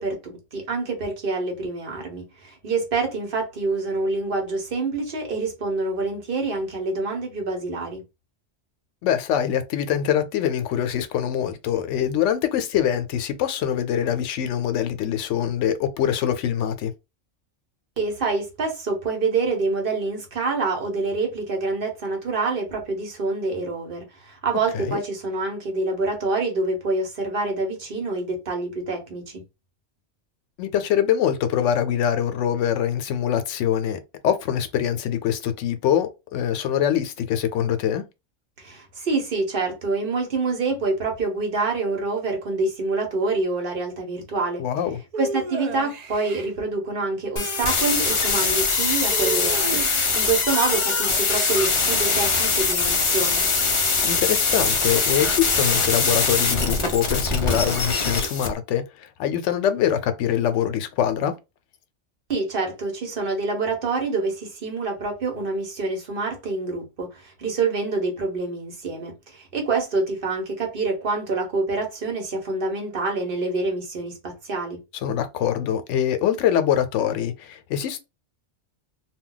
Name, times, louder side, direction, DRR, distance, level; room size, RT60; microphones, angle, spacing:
voice 1, 0.0-8.0 18.0-29.4 38.6-44.6 45.2-49.8 50.1-53.4 62.3-74.8, right 3 dB, 55° right, 1.0 m, -26 dB
voice 2, 9.0-16.9 24.7-25.0 30.6-38.0 44.6-45.0 54.0-61.3 75.0-78.0, left 9 dB, 85° left, 0.9 m, -24 dB
sound 1, 45.1-46.5 49.1-50.3, right 4 dB, 70° right, 0.4 m, -32 dB
sound 2, 47.4-58.5, left 4 dB, 45° left, 0.4 m, -22 dB
2.2 x 2.2 x 3.8 m
omnidirectional pair, 1.2 m